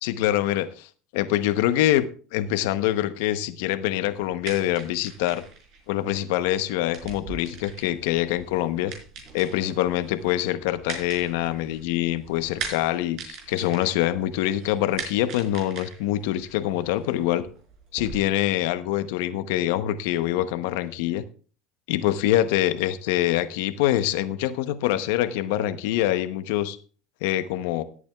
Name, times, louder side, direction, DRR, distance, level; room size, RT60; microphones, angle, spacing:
voice 1, 0.0-2.1 2.3-5.4 5.9-8.9 9.3-17.5 17.9-21.2 21.9-26.8 27.2-27.8, left 13 dB, 80° left, 11 dB, 0.8 m, -25 dB
sound 1, 4.1-18.2, right 6 dB, 60° right, 4.4 m, -41 dB
17.5 x 8.6 x 2.3 m, 0.40 s
supercardioid pair, 95°, 0 cm